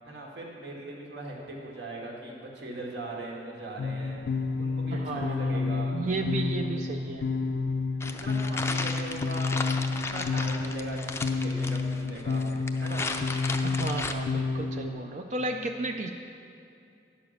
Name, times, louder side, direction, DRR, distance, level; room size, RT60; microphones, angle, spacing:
voice 1, 0.1-4.2 4.6-6.0 8.1-13.0, right 2 dB, 70° right, -2 dB, 1.8 m, -40 dB
sound 1, 3.8-14.9, left 4 dB, 70° left, 0.5 m, -30 dB
voice 2, 4.9-7.2 13.6-16.1, right 3 dB, 45° right, 4 dB, 0.4 m, -33 dB
sound 2, 8.0-14.1, left 3 dB, 15° left, 0.4 m, -35 dB
10.5 x 6.8 x 6.4 m, 2.6 s
head